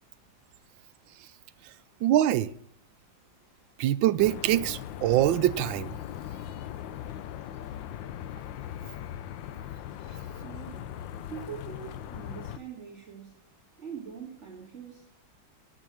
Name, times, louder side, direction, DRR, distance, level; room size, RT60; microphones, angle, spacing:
voice 1, 2.0-2.5 3.8-6.0, right 13 dB, 90° right, 1.4 m, -24 dB
sound 1, 4.2-12.6, left 10 dB, 85° left, 1.4 m, -39 dB
voice 2, 10.4-10.9 11.3-13.4 13.8-15.2, right 8 dB, 35° right, 2.6 m, -43 dB
9.2 x 8.8 x 6.2 m
omnidirectional pair, 2.0 m